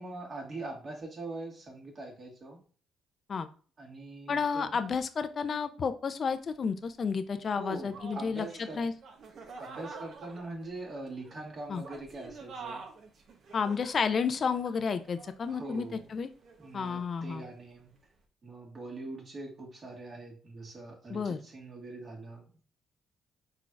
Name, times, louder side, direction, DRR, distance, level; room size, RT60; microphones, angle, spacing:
voice 1, 0.0-2.6 3.8-4.8 7.5-8.9 9.6-12.8 15.5-16.0 16.6-17.9 18.4-22.7, right 2 dB, 45° right, -1 dB, 1.6 m, -43 dB
voice 2, 4.3-8.5 8.7-8.9 11.7-11.8 13.5-16.3 16.7-17.4 21.1-21.4, left 5 dB, 45° left, 10 dB, 0.5 m, -31 dB
sound 1, 6.3-6.4 7.1-7.2 7.8-17.6, right 4 dB, 65° right, 0.9 m, -48 dB
4.4 x 4.0 x 2.4 m, 0.41 s
cardioid pair, 90°, 0 cm